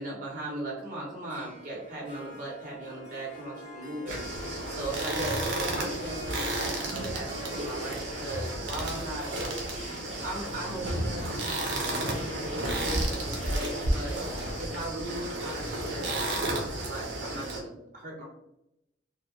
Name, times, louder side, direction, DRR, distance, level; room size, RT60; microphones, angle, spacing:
voice 1, 0.0-9.3 10.0-14.2 14.6-18.2, right 1 dB, 45° right, -4 dB, 0.9 m, -38 dB
Harp, 1.3-12.7, left 1 dB, 80° left, 1.1 m, -46 dB
sound 1, 4.1-17.6, right 1 dB, 75° right, 0.6 m, -32 dB
sound 2, 5.1-14.9, left 1 dB, 35° left, 0.6 m, -46 dB
2.5 x 2.1 x 3.1 m, 0.85 s
head